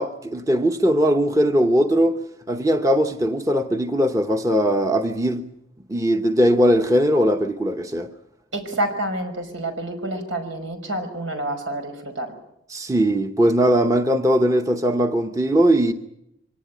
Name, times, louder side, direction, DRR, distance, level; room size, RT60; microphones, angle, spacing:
voice 1, 0.0-2.2 2.5-5.4 5.9-8.1 12.7-15.9, equal, 15° right, 0.9 m, -19 dB
voice 2, 8.5-12.3, right 1 dB, 85° right, 5.6 m, -28 dB
24.5 x 18.5 x 9.2 m
head